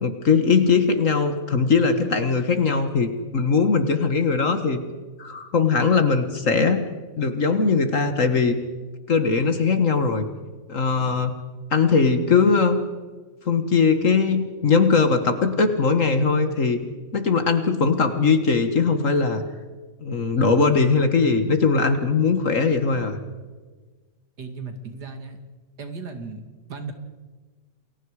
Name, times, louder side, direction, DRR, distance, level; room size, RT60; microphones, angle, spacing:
voice 1, 0.0-4.8 5.2-6.8 7.2-8.6 9.1-10.2 10.7-11.3 11.7-12.8 13.5-16.8 17.1-19.4 20.0-23.2, left 4 dB, 50° left, 8 dB, 1.8 m, -20 dB
voice 2, 24.4-25.4 25.8-26.4 26.7-26.9, right 4 dB, 65° right, 6 dB, 2.8 m, -35 dB
29.0 x 21.5 x 4.9 m, 1.4 s
omnidirectional pair, 1.9 m